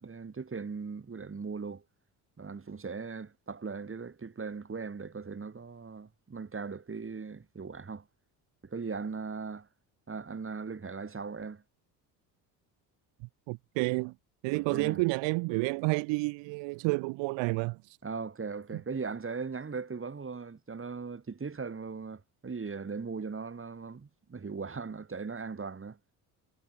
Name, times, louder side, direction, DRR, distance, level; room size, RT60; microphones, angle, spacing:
voice 1, 0.0-1.8 2.4-8.1 8.6-9.7 10.1-11.6 14.5-15.0 18.0-26.0, right 5 dB, 30° right, 6.5 m, -39 dB
voice 2, 13.5-14.1 14.4-18.0, right 27 dB, 80° right, 1.2 m, -30 dB
supercardioid pair, 75°, 43 cm